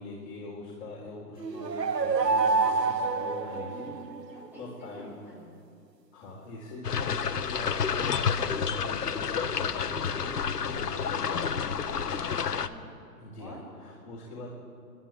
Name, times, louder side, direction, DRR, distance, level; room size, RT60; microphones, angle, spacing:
voice 1, 0.0-3.9 4.3-5.1 6.1-11.7 13.2-14.5, left 2 dB, 40° left, -3 dB, 4.2 m, -42 dB
sound 1, 1.4-4.3, right 4 dB, 90° right, 1.1 m, -27 dB
voice 2, 4.3-4.7 4.9-5.6 11.7-13.1 13.4-13.6, equal, 5° right, -6 dB, 7.4 m, -47 dB
sound 2, 6.8-12.7, left 7 dB, 70° left, 1.1 m, -29 dB
27.5 x 11.0 x 8.5 m, 2.3 s
figure-of-eight pair, 130°, 48 cm